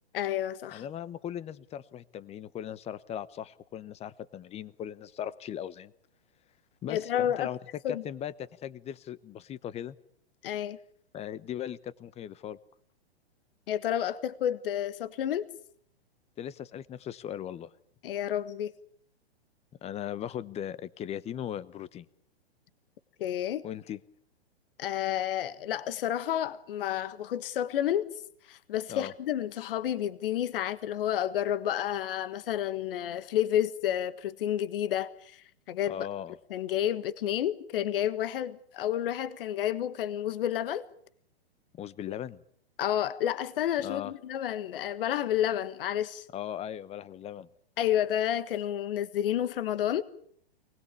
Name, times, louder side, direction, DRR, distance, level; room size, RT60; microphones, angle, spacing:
voice 1, 0.1-0.8 6.9-7.5 7.8-8.0 10.4-10.8 13.7-15.5 18.0-18.7 23.2-23.6 24.8-28.1 28.5-35.4 35.7-36.1 36.5-40.8 42.8-46.2 47.8-50.0, left 11 dB, 60° left, 1.6 m, -30 dB
voice 2, 0.7-5.9 6.8-7.6 7.9-10.0 11.1-12.6 16.4-17.7 19.8-22.0 23.6-24.0 28.9-29.1 35.9-36.3 41.8-42.4 43.8-44.1 46.3-47.5, left 10 dB, 20° left, 1.0 m, -38 dB
24.0 x 20.0 x 8.4 m
hypercardioid pair, 125°, 31 cm